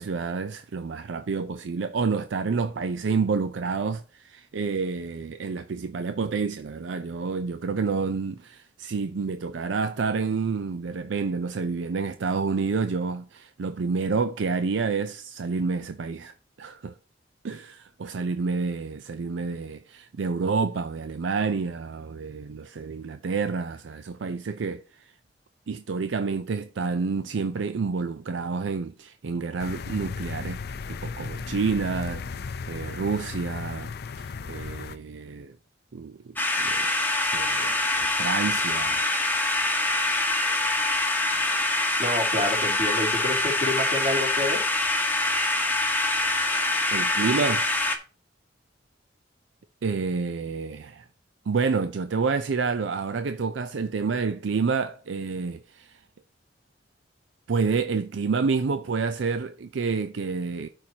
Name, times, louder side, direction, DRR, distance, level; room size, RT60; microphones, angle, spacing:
voice 1, 0.0-17.0 17.4-25.1 25.7-30.6 30.9-35.6 35.9-36.9 37.2-39.1 46.9-47.8 49.8-51.1 51.5-56.0 57.5-60.7, right 4 dB, 75° right, 0.5 m, -29 dB
sound 1, 29.6-35.0, left 5 dB, 60° left, 0.5 m, -35 dB
sound 2, 36.4-48.0, left 2 dB, 10° left, 1.0 m, -25 dB
voice 2, 42.0-44.6, left 1 dB, 35° right, 3.4 m, -28 dB
12.5 x 4.6 x 2.8 m
head